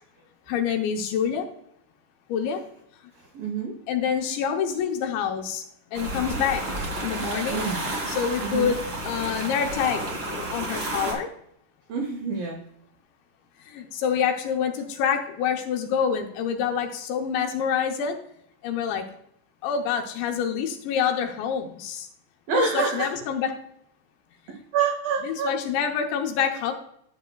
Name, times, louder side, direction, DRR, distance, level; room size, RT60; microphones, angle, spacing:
voice 1, 0.5-1.5 2.3-2.6 3.9-5.6 5.9-6.6 7.0-7.6 8.1-8.8 9.0-10.0 10.5-11.3 13.6-18.2 18.6-19.0 19.6-22.1 22.5-23.5 25.2-26.7, left 7 dB, 80° left, 4 dB, 2.8 m, -26 dB
voice 2, 3.1-3.8 7.5-7.9 8.4-8.8 11.9-12.6 22.5-23.2 24.5-25.6, right 5 dB, 85° right, 2 dB, 2.0 m, -27 dB
sound 1, 5.9-11.1, right 1 dB, 45° right, 1.3 m, -31 dB
12.0 x 8.0 x 2.2 m, 0.72 s
omnidirectional pair, 5.6 m